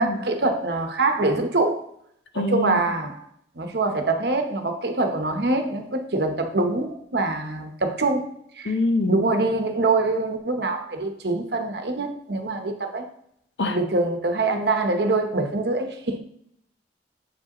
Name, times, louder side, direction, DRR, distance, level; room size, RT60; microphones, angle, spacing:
voice 1, 0.0-1.8 2.3-3.2 3.6-8.3 8.6-8.8 9.1-13.0 13.6-16.2, right 2 dB, 60° right, 5 dB, 0.9 m, -24 dB
voice 2, 2.4-2.8 8.7-9.2 13.6-13.8, left 2 dB, 75° left, 8 dB, 0.6 m, -24 dB
7.0 x 4.9 x 2.9 m, 0.71 s
head